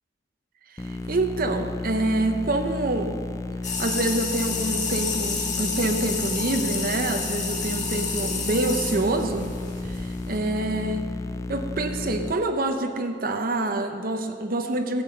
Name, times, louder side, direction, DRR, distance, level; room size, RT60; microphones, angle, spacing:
voice 1, 0.7-3.2 3.7-9.5 9.8-11.0 11.5-15.0, right 2 dB, 50° right, 5 dB, 0.8 m, -26 dB
sound 1, 0.8-12.3, left 2 dB, 15° left, 0.3 m, -33 dB
sound 2, 3.6-10.4, left 5 dB, 40° left, 1.5 m, -30 dB
13.0 x 7.7 x 5.4 m, 2.3 s
head